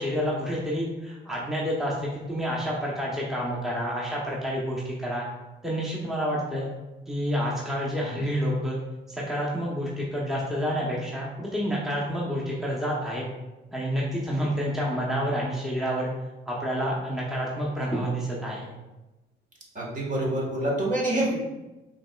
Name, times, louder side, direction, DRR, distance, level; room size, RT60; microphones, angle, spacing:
voice 1, 0.0-5.2 5.6-6.7 7.1-8.8 9.1-13.3 13.7-16.1 16.5-18.7, equal, ahead, -4 dB, 0.8 m, -29 dB
voice 2, 19.7-21.3, right 1 dB, 40° right, -3 dB, 1.3 m, -26 dB
5.0 x 3.2 x 2.3 m, 1.1 s
cardioid pair, 90°, 20 cm